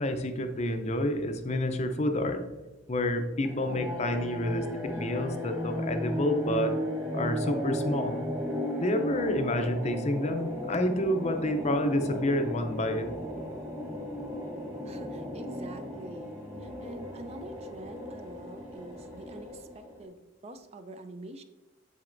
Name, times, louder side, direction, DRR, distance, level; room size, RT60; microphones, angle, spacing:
voice 1, 0.0-2.4 2.9-4.7 4.9-6.8 7.1-8.3 8.8-13.1, left 1 dB, 30° left, 7 dB, 0.5 m, -29 dB
sound 1, 3.4-20.0, equal, 15° right, 1.4 m, -36 dB
voice 2, 14.8-16.3 16.6-21.4, right 2 dB, 30° right, 8 dB, 0.4 m, -46 dB
7.4 x 7.0 x 2.5 m, 1.1 s
head